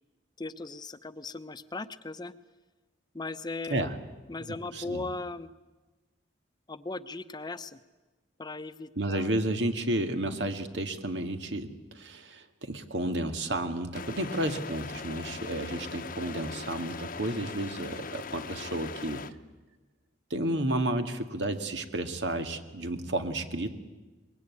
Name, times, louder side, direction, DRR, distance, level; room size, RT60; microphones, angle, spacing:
voice 1, 0.4-2.3 3.1-3.9 4.3-5.5 6.7-7.8 8.4-9.3, left 3 dB, 25° left, 12 dB, 0.8 m, -38 dB
voice 2, 9.0-19.2 20.3-23.7, right 1 dB, 85° right, 7 dB, 2.0 m, -32 dB
sound 1, 13.9-19.3, left 5 dB, 50° left, 0.9 m, -40 dB
23.5 x 21.5 x 9.7 m, 1.2 s
head